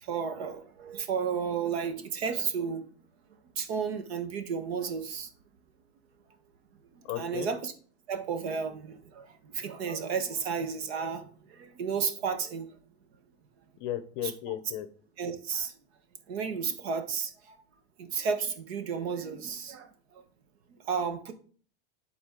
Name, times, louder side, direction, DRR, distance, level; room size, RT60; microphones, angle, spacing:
voice 1, 0.0-2.8 3.6-5.3 6.9-7.7 8.1-12.7 15.2-15.7 16.3-17.5 18.0-19.9 20.9-21.3, right 6 dB, 70° right, 8 dB, 1.3 m, -32 dB
voice 2, 7.0-7.5 13.8-14.9, left 12 dB, 40° left, 12 dB, 0.6 m, -35 dB
10.5 x 4.2 x 3.8 m, 0.43 s
supercardioid pair, 160°, 32 cm